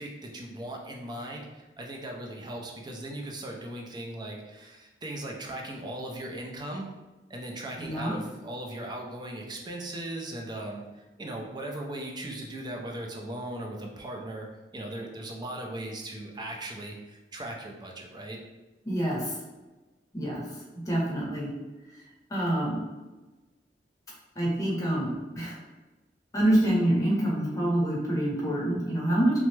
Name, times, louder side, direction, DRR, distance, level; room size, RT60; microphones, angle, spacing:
voice 1, 0.0-6.9 7.3-10.8 11.2-14.5 14.7-18.4, right 1 dB, 25° right, 0 dB, 0.4 m, -38 dB
voice 2, 7.8-8.1 18.8-19.3 20.1-20.4 20.9-21.5 22.3-22.8 24.4-25.1 25.3-25.5 26.3-29.4, right 1 dB, 20° left, -5 dB, 0.8 m, -26 dB
3.2 x 2.0 x 3.1 m, 1.1 s
head